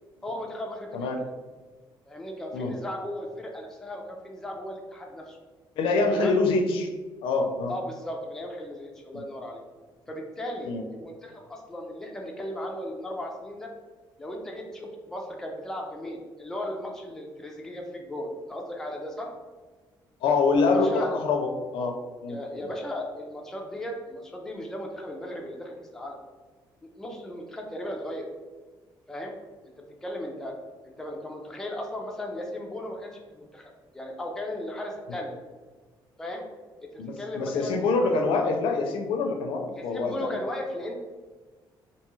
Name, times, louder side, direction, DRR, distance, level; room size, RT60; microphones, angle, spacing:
voice 1, 0.2-1.3 2.1-5.4 6.2-6.4 7.7-9.6 10.1-13.7 14.2-19.3 20.7-21.2 22.3-26.2 27.0-28.3 29.1-29.4 29.8-30.5 30.8-35.3 36.2-36.4 36.8-37.9 39.7-40.9, left 1 dB, 5° left, 0 dB, 0.3 m, -36 dB
voice 2, 5.8-6.9 7.2-7.7 10.7-10.8 20.2-22.4 37.0-40.3, left 3 dB, 85° left, 4 dB, 0.4 m, -25 dB
2.6 x 2.3 x 3.0 m, 1.3 s
cardioid pair, 165°, 9 cm